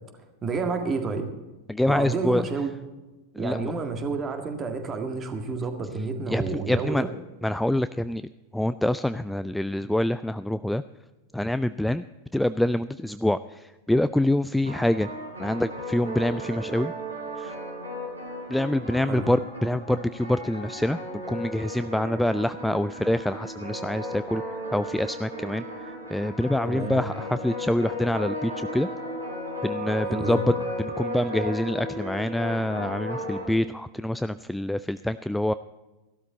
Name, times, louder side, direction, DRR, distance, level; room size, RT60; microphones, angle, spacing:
voice 1, 0.4-1.3 1.8-2.7 3.4-7.1 19.1-19.3 26.7-27.0 30.1-30.6, right 4 dB, 25° right, 6 dB, 1.9 m, -30 dB
voice 2, 1.7-2.4 3.4-3.7 6.3-7.0 7.4-8.2 8.5-10.8 11.3-12.0 12.3-15.1 15.4-16.9 17.4-17.5 18.5-21.0 21.3-24.4 24.7-28.9 29.6-30.5 30.8-35.5, left 1 dB, 5° left, 13 dB, 0.3 m, -26 dB
sound 1, 14.6-33.4, left 1 dB, 80° right, 3.6 m, -35 dB
15.0 x 12.5 x 4.1 m, 1.1 s
figure-of-eight pair, 90°, 0 cm